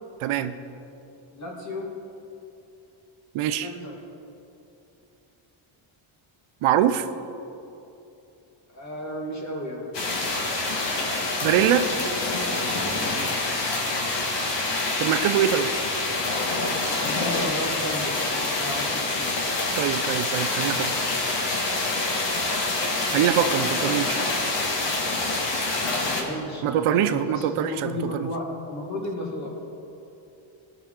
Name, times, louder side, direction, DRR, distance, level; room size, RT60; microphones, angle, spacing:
voice 1, 0.2-0.5 3.3-3.7 6.6-7.1 11.4-11.9 15.0-15.7 19.8-21.0 23.1-24.2 26.6-28.3, right 10 dB, 80° right, 10 dB, 0.6 m, -23 dB
voice 2, 1.3-1.9 3.6-3.9 8.7-9.9 13.1-13.4 16.9-19.4 25.8-29.5, left 1 dB, 35° left, -2 dB, 1.9 m, -34 dB
sound 1, 9.9-26.2, left 2 dB, 60° left, 1.6 m, -26 dB
18.0 x 6.1 x 3.7 m, 2.9 s
cardioid pair, 170°, 49 cm